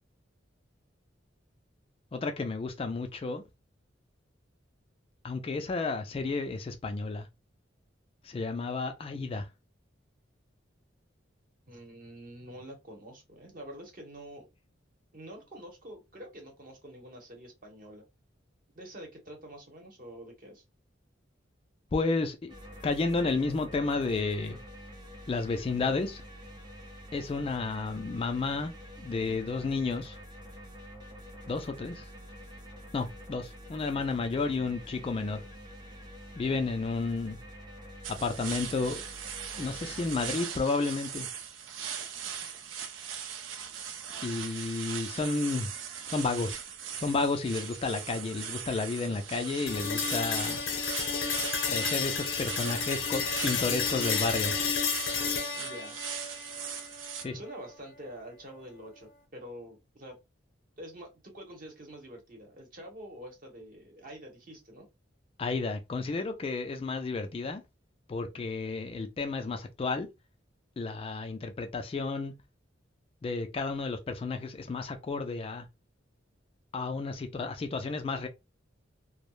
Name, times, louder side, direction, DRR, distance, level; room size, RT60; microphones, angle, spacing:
voice 1, 2.1-3.4 5.2-7.3 8.2-9.5 21.9-22.5 22.8-24.6 25.3-26.2 27.1-28.7 29.0-30.2 31.5-32.1 32.9-35.4 36.4-37.4 38.1-39.0 39.6-41.3 44.2-45.7 46.1-46.6 46.9-50.6 51.7-54.6 57.2-57.4 65.4-67.6 68.1-70.1 70.8-72.3 73.2-75.7 76.7-78.3, left 3 dB, 30° left, 0.3 m, -32 dB
voice 2, 11.7-14.5 15.1-18.0 18.7-20.6 49.1-49.2 55.5-56.0 57.3-60.2 60.8-64.9, right 1 dB, 45° right, 0.9 m, -46 dB
sound 1, 22.5-40.3, equal, 25° right, 0.6 m, -47 dB
sound 2, 38.0-57.2, right 8 dB, 80° right, 0.4 m, -40 dB
sound 3, 49.7-57.7, left 5 dB, 75° left, 0.7 m, -31 dB
2.2 x 2.0 x 3.0 m
head